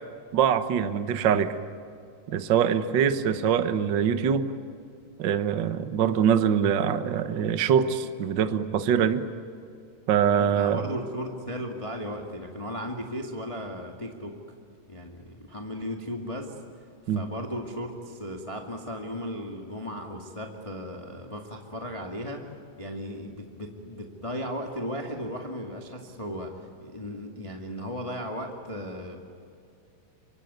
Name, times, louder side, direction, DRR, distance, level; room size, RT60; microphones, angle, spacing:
voice 1, 0.3-1.6 2.3-4.5 5.2-9.3 10.1-10.8 17.1-17.2, right 8 dB, 75° right, 9 dB, 1.0 m, -23 dB
voice 2, 10.3-14.4 14.9-16.5 17.1-22.5 22.8-29.2, equal, 15° left, 1 dB, 1.6 m, -36 dB
25.0 x 25.0 x 9.5 m, 2.5 s
omnidirectional pair, 3.9 m